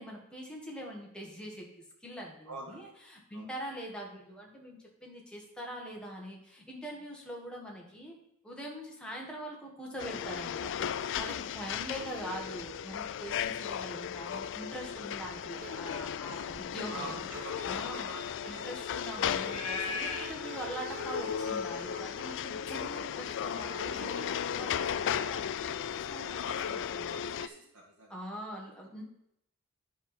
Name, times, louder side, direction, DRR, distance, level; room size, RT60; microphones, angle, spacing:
voice 1, 0.0-8.1 8.4-17.2 17.6-18.1 18.5-27.1 28.1-29.0, equal, 5° left, -2 dB, 1.6 m, -43 dB
voice 2, 2.5-2.9 3.3-3.5 16.8-18.7 25.8-26.1 26.3-28.1, right 2 dB, 75° right, -4 dB, 1.7 m, -46 dB
sound 1, 10.0-27.5, left 8 dB, 55° left, 0.3 m, -36 dB
sound 2, 13.9-14.0 14.3-16.1 16.5-17.4 17.8-24.3, right 3 dB, 40° right, 0.6 m, -47 dB
sound 3, 16.9-23.7, left 4 dB, 75° left, 1.3 m, -43 dB
9.6 x 4.4 x 5.9 m, 0.78 s
head